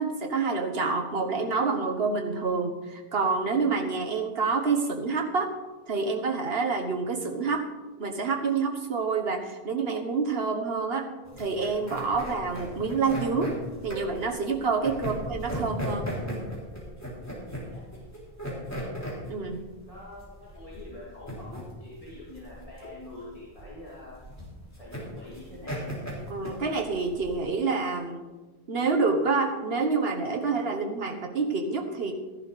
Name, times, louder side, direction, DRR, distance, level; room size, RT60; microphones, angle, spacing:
voice 1, 0.0-5.5 5.9-7.6 8.0-11.1 11.4-13.5 13.8-16.1 19.3-19.6 26.3-28.2 28.7-32.1, right 4 dB, 70° right, 3 dB, 1.5 m, -27 dB
sound 1, 11.2-27.4, equal, 15° left, 3.5 m, -37 dB
voice 2, 19.9-24.2 24.8-25.8, left 2 dB, 35° left, -9 dB, 2.9 m, -45 dB
13.5 x 11.0 x 4.1 m, 1.2 s
omnidirectional pair, 1.0 m